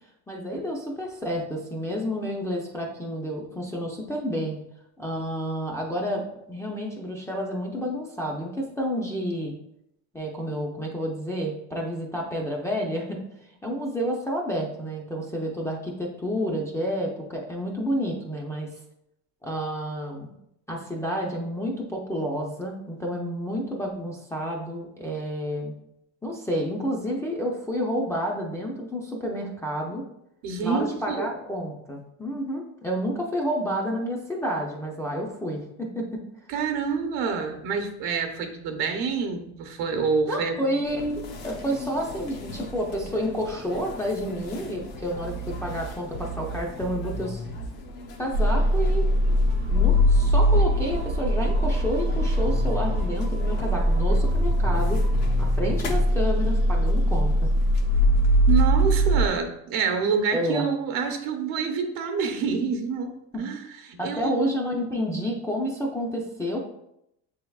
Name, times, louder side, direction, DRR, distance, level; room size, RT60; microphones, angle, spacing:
voice 1, 0.3-4.6 5.0-9.6 10.1-13.2 13.6-18.7 19.4-20.3 20.7-25.7 26.2-30.1 30.6-36.2 40.3-47.4 48.2-49.0 49.7-55.0 55.4-57.5 60.3-60.7 63.3-63.4 64.0-66.6, equal, 10° left, -2 dB, 0.4 m, -30 dB
voice 2, 30.4-31.3 36.5-40.8 58.5-64.4, right 5 dB, 70° right, 5 dB, 0.9 m, -27 dB
sound 1, 40.8-59.4, equal, 75° left, 0.9 m, -38 dB
sound 2, 45.1-47.7 49.5-53.1 54.1-55.8, right 2 dB, 45° left, 0.7 m, -35 dB
sound 3, 48.3-59.3, equal, 45° right, 0.7 m, -21 dB
6.7 x 3.4 x 2.3 m, 0.79 s
cardioid pair, 145°, 37 cm